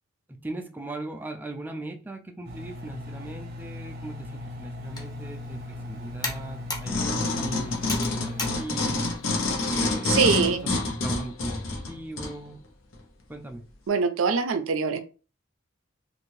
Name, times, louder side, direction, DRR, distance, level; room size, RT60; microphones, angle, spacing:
voice 1, 0.4-9.1 9.7-12.6 13.3-13.7, right 2 dB, 10° right, 3 dB, 0.4 m, -39 dB
Engine, 2.4-8.6, left 2 dB, 50° right, 0.7 m, -39 dB
Computer keyboard, 4.8-9.9, left 2 dB, 20° left, 0.7 m, -39 dB
sound 1, 6.9-12.3 12.9-13.0, left 2 dB, 85° left, 0.8 m, -27 dB
voice 2, 9.7-10.7 13.9-15.0, right 5 dB, 80° right, 9 dB, 0.4 m, -24 dB
2.7 x 2.5 x 3.1 m, 0.35 s
head